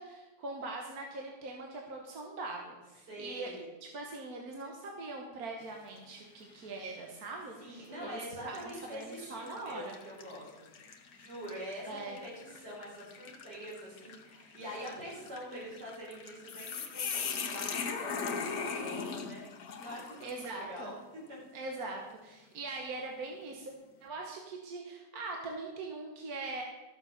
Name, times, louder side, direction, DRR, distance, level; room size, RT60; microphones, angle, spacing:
voice 1, 0.0-3.5 3.8-10.0 11.8-12.2 20.2-20.9 21.5-23.7 24.0-26.6, right 3 dB, 65° right, 1 dB, 1.8 m, -42 dB
voice 2, 3.1-3.7 7.6-10.7 11.1-19.5 19.8-21.4, equal, 90° right, -5 dB, 5.5 m, -45 dB
sound 1, 5.6-6.1 6.6-6.7 7.7-7.9 8.5-20.6, left 5 dB, 65° left, 1.5 m, -40 dB
13.0 x 7.4 x 6.5 m, 1.1 s
omnidirectional pair, 1.7 m